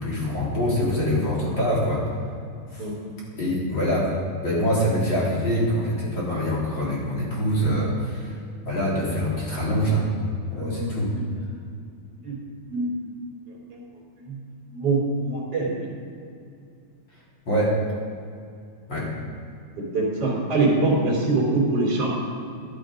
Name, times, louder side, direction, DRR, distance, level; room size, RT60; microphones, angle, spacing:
voice 1, 0.0-2.0 2.7-2.9 3.4-4.1 4.4-8.4 8.7-10.1 10.5-11.1 17.5-17.8 18.9-19.1, equal, 30° left, -6 dB, 4.0 m, -24 dB
voice 2, 10.6-11.2 12.2-12.4 12.7-12.9 13.7-13.8 14.2-14.3 14.7-15.0 15.2-15.9 19.8-22.1, right 3 dB, 40° right, -6 dB, 4.2 m, -24 dB
13.0 x 12.0 x 5.2 m, 2.5 s
omnidirectional pair, 4.2 m